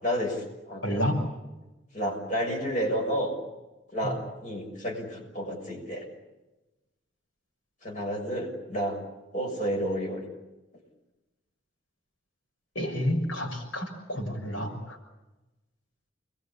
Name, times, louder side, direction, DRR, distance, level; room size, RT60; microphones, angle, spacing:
voice 1, 0.0-1.0 1.9-3.3 3.9-6.0 7.8-9.0 9.3-10.2, equal, 40° left, 1 dB, 6.6 m, -30 dB
voice 2, 0.8-1.1 4.0-4.1 12.7-15.0, equal, 80° left, 1 dB, 6.4 m, -30 dB
29.5 x 21.5 x 8.5 m, 1.0 s
head